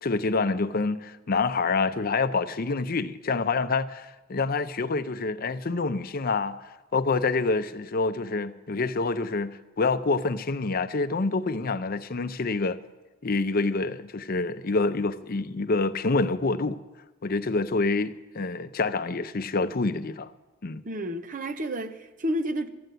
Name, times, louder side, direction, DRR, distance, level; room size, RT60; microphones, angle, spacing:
voice 1, 0.0-12.8 13.2-16.8 17.2-20.3 20.6-20.8, left 3 dB, 50° left, 0.6 m, -27 dB
voice 2, 20.8-22.7, equal, 45° right, 0.9 m, -30 dB
13.5 x 8.0 x 9.2 m
head